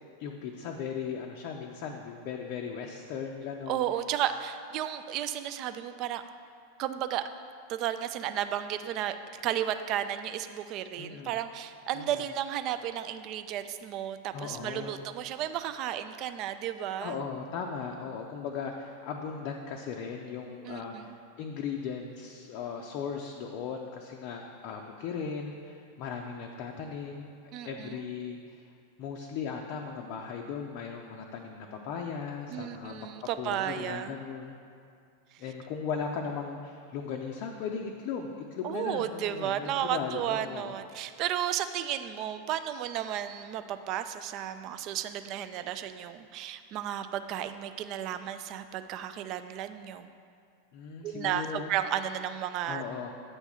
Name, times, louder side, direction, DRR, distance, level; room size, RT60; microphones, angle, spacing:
voice 1, 0.2-3.8 11.0-11.4 11.9-12.3 14.3-15.0 17.0-27.3 27.6-28.7 29.0-33.1 33.4-34.6 35.4-40.7 50.7-51.7 52.7-53.1, left 6 dB, 45° left, 1 dB, 0.5 m, -37 dB
voice 2, 3.7-6.2 6.8-7.2 7.7-9.2 9.4-17.2 20.6-21.2 27.5-28.1 32.5-34.1 38.6-50.1 51.0-52.8, right 11 dB, 40° right, 10 dB, 0.3 m, -33 dB
8.2 x 3.4 x 5.6 m, 2.4 s
figure-of-eight pair, 90°, 0 cm